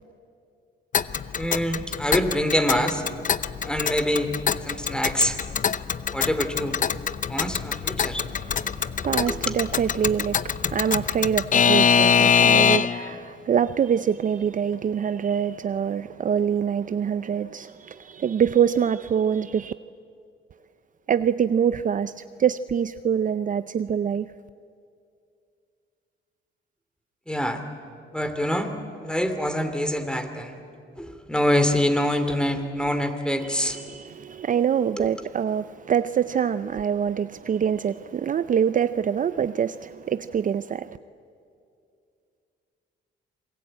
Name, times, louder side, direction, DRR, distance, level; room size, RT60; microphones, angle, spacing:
Alarm / Clock, 0.9-13.1, left 7 dB, 40° left, 0.7 m, -24 dB
voice 1, 1.3-3.0 3.6-5.4 6.1-6.8 7.3-8.2 9.3-9.6 27.3-27.6 28.1-28.7 29.0-30.6 31.0-33.8 35.0-35.1, equal, 5° left, 2.6 m, -25 dB
voice 2, 8.2-19.7 21.1-24.3 33.7-41.0, right 8 dB, 40° right, 0.5 m, -25 dB
27.5 x 21.0 x 8.8 m
cardioid pair, 90°, 20 cm